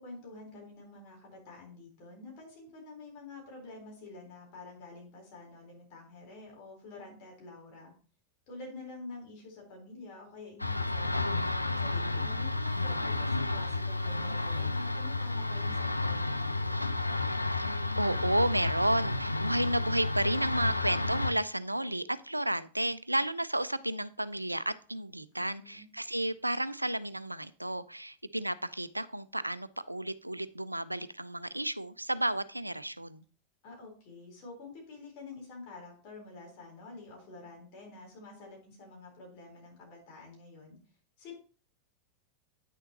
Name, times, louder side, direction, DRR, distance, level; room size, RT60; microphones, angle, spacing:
voice 1, 0.0-7.9 8.5-11.3 11.8-16.9 25.3-25.9 33.6-40.8 41.2-41.3, left 3 dB, 45° left, -1 dB, 4.0 m, -48 dB
sound 1, 10.6-21.3, left 2 dB, 85° left, 0.4 m, -31 dB
voice 2, 17.5-33.2, right 1 dB, 85° right, 16 dB, 0.3 m, -32 dB
9.2 x 6.6 x 2.9 m, 0.39 s
figure-of-eight pair, 90°, 0 cm